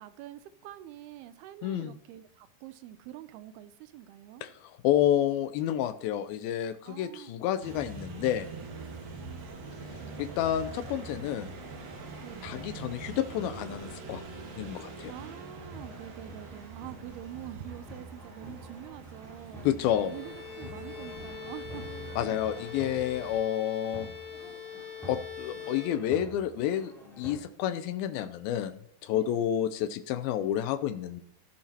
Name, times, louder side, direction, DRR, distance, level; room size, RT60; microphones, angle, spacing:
voice 1, 0.0-4.4 6.8-7.3 12.2-12.5 15.1-21.9 29.1-29.5, right 12 dB, 85° right, 12 dB, 2.6 m, -46 dB
voice 2, 1.6-2.0 4.4-8.5 10.2-11.5 12.4-14.2 14.6-15.1 19.6-20.1 22.2-24.1 25.1-31.2, left 11 dB, 80° left, 11 dB, 2.3 m, -30 dB
sound 1, 7.6-23.4, right 4 dB, 60° right, 3.3 m, -44 dB
sound 2, 10.1-27.4, equal, ahead, 4.3 m, -49 dB
Bowed string instrument, 19.8-26.5, left 7 dB, 45° left, 3.5 m, -43 dB
16.5 x 11.5 x 2.9 m, 0.69 s
omnidirectional pair, 4.5 m